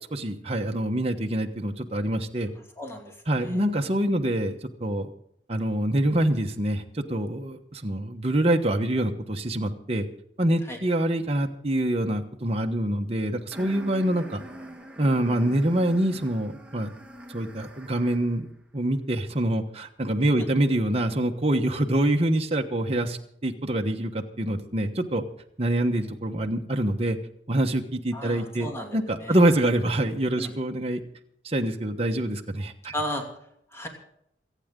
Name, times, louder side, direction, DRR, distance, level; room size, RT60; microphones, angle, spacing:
voice 1, 0.1-2.5 3.3-5.1 5.5-10.1 10.4-14.4 15.0-16.9 17.3-18.5 18.7-25.2 25.6-27.2 27.5-31.0 31.4-32.9, right 1 dB, 35° right, 3 dB, 1.2 m, -25 dB
voice 2, 2.8-3.6 10.6-10.8 20.4-20.5 28.1-29.4 30.4-30.5 32.9-33.3 33.7-33.9, equal, 15° left, 2 dB, 2.6 m, -35 dB
sound 1, 13.5-18.4, right 1 dB, 5° right, 1.7 m, -43 dB
27.5 x 9.3 x 3.8 m, 0.74 s
head